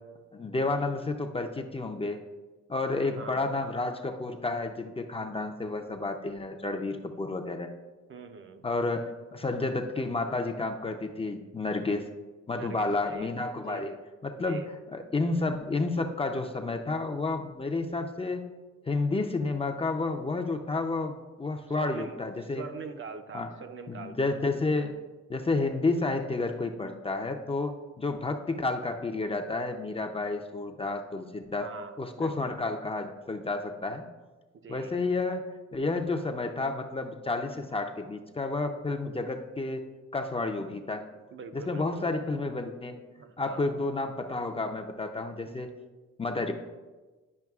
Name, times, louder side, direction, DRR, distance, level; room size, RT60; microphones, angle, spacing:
voice 1, 0.3-2.2 2.7-7.7 8.6-12.1 12.5-13.9 14.2-14.6 14.9-18.4 18.9-22.6 23.3-23.5 23.9-25.0 25.3-31.7 32.0-34.0 34.7-35.4 35.7-39.8 40.1-41.0 41.5-43.0 43.4-45.7 46.2-46.5, left 3 dB, 20° left, 4 dB, 0.5 m, -31 dB
voice 2, 3.0-3.6 8.1-8.7 12.5-13.4 13.6-14.0 14.4-14.7 21.7-22.3 22.5-24.3 31.6-32.6 34.5-35.0 41.3-42.2 43.2-43.8, right 5 dB, 40° right, 7 dB, 0.6 m, -43 dB
10.5 x 5.2 x 2.4 m, 1.3 s
cardioid pair, 90°, 30 cm